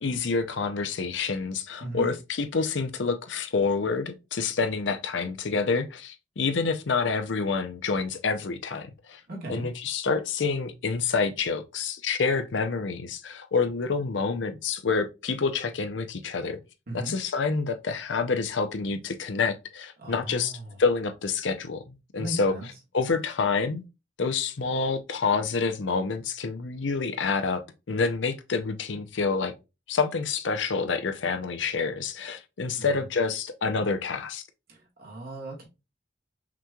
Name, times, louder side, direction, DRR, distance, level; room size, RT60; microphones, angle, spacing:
voice 1, 0.0-9.2 9.5-16.6 16.9-20.5 20.8-22.5 22.9-23.8 24.2-27.6 27.9-29.5 29.9-34.4, left 4 dB, 80° left, 0.6 m, -28 dB
voice 2, 1.8-2.1 9.3-9.7 16.9-17.1 20.0-20.8 22.2-22.7 32.8-33.1 34.7-35.6, right 2 dB, 55° right, 1.7 m, -37 dB
5.8 x 3.1 x 2.3 m
head